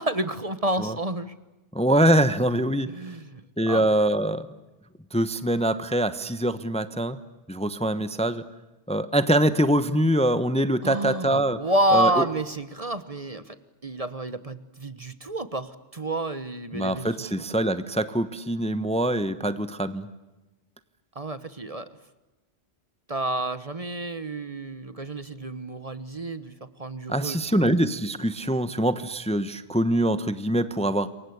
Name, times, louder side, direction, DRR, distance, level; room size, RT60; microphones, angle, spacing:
voice 1, 0.0-1.3 2.9-3.4 3.7-3.8 10.8-13.5 13.8-17.1 21.1-21.9 23.1-26.5 26.8-27.7, right 1 dB, 30° right, 13 dB, 1.2 m, -29 dB
voice 2, 1.7-2.9 3.6-4.5 5.1-7.2 7.5-8.4 8.9-11.6 11.9-12.2 16.7-20.1 27.1-31.1, right 1 dB, 5° left, 12 dB, 1.0 m, -24 dB
27.5 x 23.5 x 8.0 m, 1.1 s
omnidirectional pair, 1.2 m